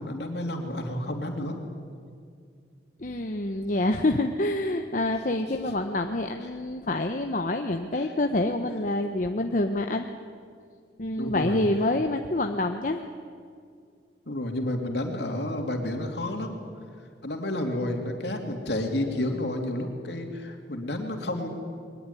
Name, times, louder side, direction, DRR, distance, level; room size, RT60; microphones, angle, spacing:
voice 1, 0.0-1.6 5.5-5.7 7.9-8.1 11.2-11.6 14.3-16.5 17.2-21.5, left 1 dB, 65° left, 3 dB, 3.1 m, -30 dB
voice 2, 3.0-10.1 11.0-13.0, left 2 dB, 45° left, 5 dB, 0.9 m, -27 dB
22.0 x 19.5 x 9.8 m, 2.2 s
head